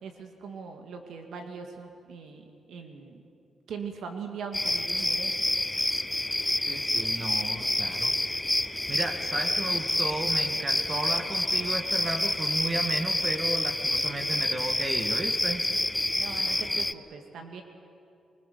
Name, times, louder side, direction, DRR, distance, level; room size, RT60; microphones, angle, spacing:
voice 1, 0.0-3.2 3.7-5.3 16.0-17.6, right 5 dB, 80° right, 4 dB, 2.0 m, -41 dB
sound 1, 4.5-16.9, left 1 dB, 10° left, 0.6 m, -28 dB
voice 2, 6.7-8.4 8.9-15.6, right 2 dB, 40° right, 5 dB, 1.9 m, -34 dB
24.0 x 20.5 x 6.9 m, 2.6 s
cardioid pair, 75°, 0 cm